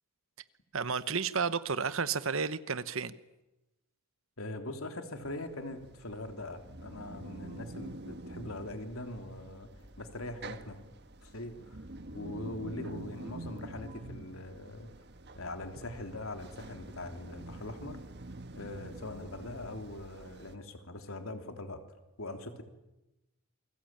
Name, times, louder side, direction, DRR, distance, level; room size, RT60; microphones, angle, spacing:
voice 1, 0.7-3.1, right 5 dB, 70° right, 1.1 m, -32 dB
voice 2, 4.4-9.7 10.0-10.8 11.2-11.8 12.1-14.9 15.3-18.0 18.5-21.8 22.2-22.6, left 1 dB, 75° left, 3.2 m, -42 dB
sound 1, 5.1-20.6, right 2 dB, 50° right, 1.5 m, -47 dB
28.5 x 22.0 x 8.9 m
head